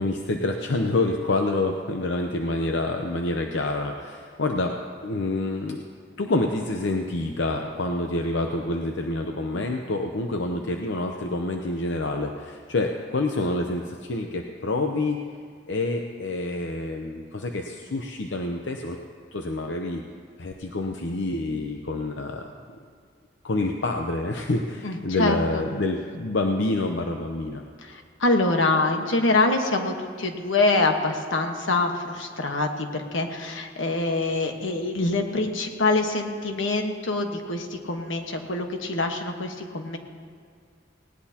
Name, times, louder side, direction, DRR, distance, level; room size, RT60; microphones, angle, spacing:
voice 1, 0.0-4.8 5.0-5.8 6.2-15.2 15.7-19.0 19.3-20.0 20.4-22.5 23.4-27.6, left 2 dB, 70° left, 3 dB, 0.8 m, -27 dB
voice 2, 24.8-25.6 27.8-40.0, left 2 dB, 90° left, 4 dB, 1.3 m, -25 dB
19.0 x 18.0 x 2.9 m, 2.1 s
head